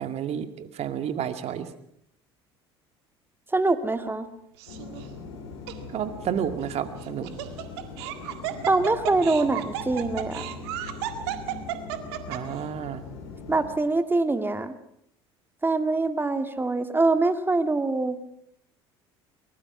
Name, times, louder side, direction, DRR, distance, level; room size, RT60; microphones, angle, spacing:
voice 1, 0.0-1.7 5.9-7.3 12.3-13.0, right 9 dB, 50° right, 9 dB, 2.1 m, -31 dB
voice 2, 3.5-4.3 8.7-10.4 13.5-14.7 15.6-18.2, right 3 dB, 15° right, 9 dB, 2.1 m, -24 dB
Laughter, 4.6-5.1 5.7-5.8 7.0-12.6, right 13 dB, 75° right, 1.9 m, -33 dB
sound 1, 4.7-13.8, left 4 dB, 80° left, 4.1 m, -41 dB
23.0 x 20.0 x 6.0 m, 0.73 s
hypercardioid pair, 65°, 14 cm